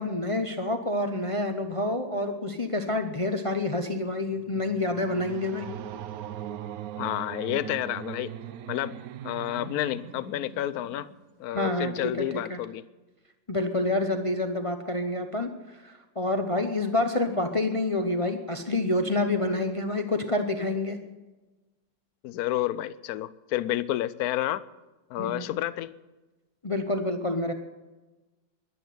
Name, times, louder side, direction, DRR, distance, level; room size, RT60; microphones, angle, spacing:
voice 1, 0.0-5.7 11.5-12.6 13.5-21.0 25.2-25.5 26.6-27.5, left 2 dB, 40° left, 6 dB, 0.4 m, -28 dB
sound 1, 4.0-11.3, right 10 dB, 65° right, 0.9 m, -40 dB
voice 2, 7.0-8.3 8.7-9.0 9.2-11.1 11.4-12.8 22.2-24.6 25.1-25.9, left 13 dB, 70° left, 17 dB, 0.9 m, -30 dB
11.5 x 11.0 x 9.3 m, 1.2 s
omnidirectional pair, 2.0 m